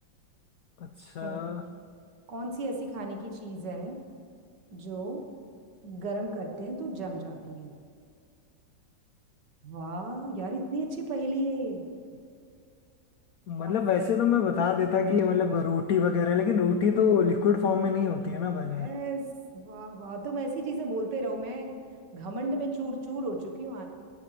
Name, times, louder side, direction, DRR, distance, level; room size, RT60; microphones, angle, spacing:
voice 1, 0.8-1.6 13.5-18.9, left 6 dB, 75° left, 7 dB, 0.8 m, -25 dB
voice 2, 2.3-4.0 4.7-5.2 5.8-7.8 9.6-11.8 13.6-13.8 18.7-19.3 19.5-21.7 22.1-23.9, right 2 dB, 65° right, 3 dB, 1.9 m, -34 dB
17.5 x 11.0 x 3.3 m, 2.3 s
omnidirectional pair, 2.1 m